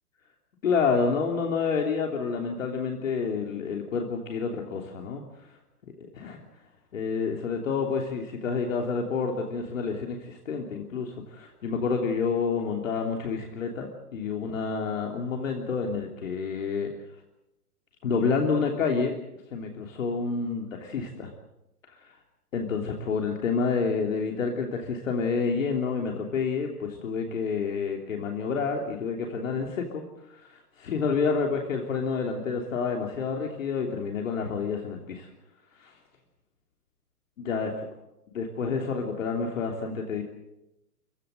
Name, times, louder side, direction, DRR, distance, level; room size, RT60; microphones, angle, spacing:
voice 1, 0.6-5.2 6.2-6.4 6.9-16.9 18.0-19.1 19.5-21.3 21.9-22.0 22.5-30.0 30.3-35.3 35.8-36.0 37.4-37.7 38.3-40.2, left 5 dB, 55° left, 2 dB, 3.2 m, -29 dB
29.5 x 15.5 x 7.9 m, 0.92 s
hypercardioid pair, 170°, 46 cm